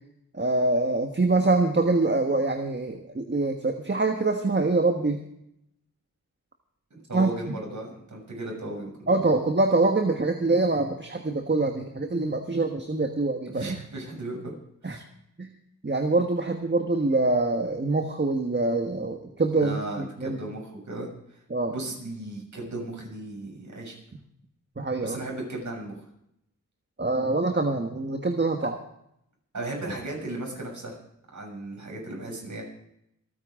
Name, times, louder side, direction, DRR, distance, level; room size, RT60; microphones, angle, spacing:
voice 1, 0.3-5.2 7.1-7.3 9.1-13.8 14.8-15.0 15.4-15.5 15.8-20.4 21.5-21.7 24.8-25.2 27.0-28.8, right 2 dB, 35° right, 4 dB, 1.5 m, -25 dB
voice 2, 6.9-9.1 13.5-14.5 14.8-15.0 19.5-21.1 21.7-24.0 25.0-25.9 28.6-28.7 29.5-31.0 31.3-32.6, right 2 dB, 60° right, 0 dB, 6.8 m, -36 dB
27.0 x 9.4 x 3.8 m, 0.77 s
wide cardioid pair, 70°, 32 cm